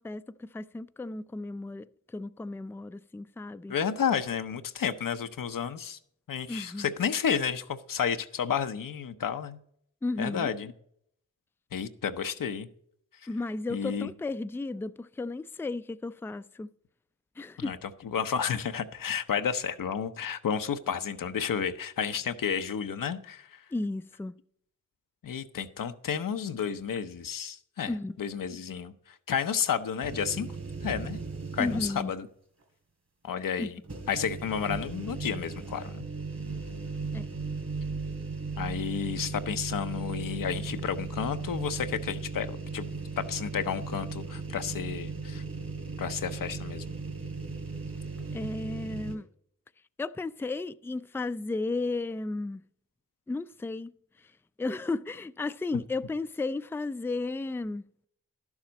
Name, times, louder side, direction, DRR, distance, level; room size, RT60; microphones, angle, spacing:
voice 1, 0.0-1.9 2.1-3.7 6.5-6.9 10.0-10.5 13.3-16.7 17.4-17.8 23.7-24.3 27.9-28.2 31.6-32.1 33.6-33.7 37.1-37.3 48.3-49.3 50.0-52.6 53.3-53.9 54.6-57.9, left 3 dB, 5° left, 0.4 m, -34 dB
voice 2, 3.7-6.0 6.3-9.6 10.2-10.7 11.7-12.7 13.7-14.1 17.6-17.8 18.1-23.6 25.2-30.5 30.8-31.2 31.5-32.3 33.2-33.8 34.1-36.0 38.6-45.4 46.0-46.8, left 7 dB, 85° left, 0.7 m, -31 dB
sound 1, 30.0-32.2 32.6-32.7 33.8-49.2, right 4 dB, 55° right, 3.1 m, -37 dB
11.5 x 7.2 x 5.2 m
cardioid pair, 40°, 32 cm